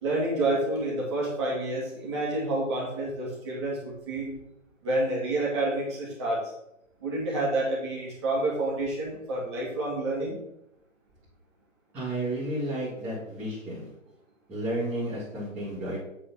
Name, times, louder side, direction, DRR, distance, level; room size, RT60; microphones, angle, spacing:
voice 1, 0.0-4.3 4.8-6.5 7.0-10.4, right 2 dB, 20° right, -5 dB, 2.7 m, -29 dB
voice 2, 11.9-13.9 14.5-16.0, right 1 dB, 5° right, -15 dB, 2.0 m, -32 dB
8.9 x 4.9 x 5.9 m, 0.84 s
hypercardioid pair, 170°, 39 cm